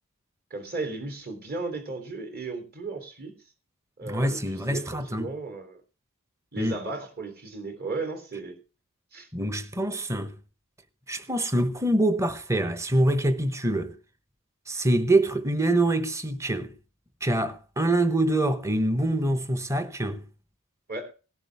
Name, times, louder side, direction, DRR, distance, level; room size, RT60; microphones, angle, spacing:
voice 1, 0.5-3.4 4.0-5.8 6.5-8.6 9.1-9.3 20.9-21.1, right 3 dB, 45° right, 3.3 m, -35 dB
voice 2, 4.0-5.3 6.6-6.7 9.3-10.3 11.1-13.9 14.7-16.7 17.2-20.2, right 1 dB, 15° right, 1.0 m, -25 dB
17.5 x 11.0 x 3.5 m
head